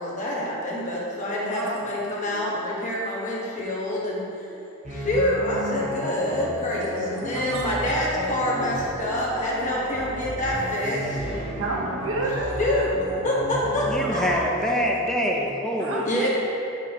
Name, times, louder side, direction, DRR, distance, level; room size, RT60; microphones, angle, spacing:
voice 1, 0.0-4.3 4.9-11.5 12.6-12.9 13.2-14.4 16.0-16.3, left 1 dB, 35° left, -5 dB, 1.3 m, -26 dB
voice 2, 1.5-1.9 6.7-6.9 7.3-7.7 11.6-12.5 15.8-16.3, right 2 dB, 70° right, -2 dB, 1.1 m, -30 dB
sound 1, 4.8-14.3, equal, 30° right, 0.9 m, -33 dB
voice 3, 13.8-16.3, equal, 5° left, -1 dB, 0.7 m, -27 dB
9.3 x 6.0 x 3.0 m, 2.8 s
head